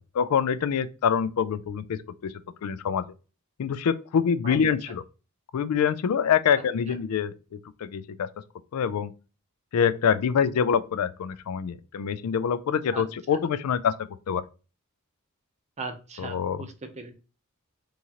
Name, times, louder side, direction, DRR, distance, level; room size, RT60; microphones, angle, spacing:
voice 1, 0.2-2.3 2.6-3.0 3.6-5.0 5.5-7.3 7.8-8.3 8.7-9.1 9.7-13.9 14.3-14.4 16.2-16.6, left 7 dB, 90° left, 0.4 m, -25 dB
voice 2, 15.8-17.1, right 3 dB, 30° right, 0.6 m, -38 dB
3.7 x 3.0 x 2.8 m
head